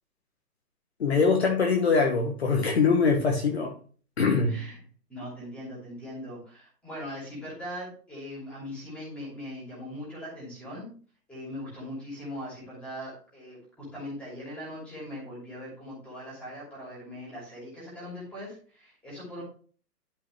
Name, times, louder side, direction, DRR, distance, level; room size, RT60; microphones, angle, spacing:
voice 1, 1.0-3.7 4.2-4.5, left 4 dB, 40° left, 1.2 m, -23 dB
voice 2, 4.5-4.8 5.1-10.9 11.3-19.4, equal, ahead, 2.8 m, -40 dB
12.0 x 5.3 x 3.2 m
hypercardioid pair, 175°, 49 cm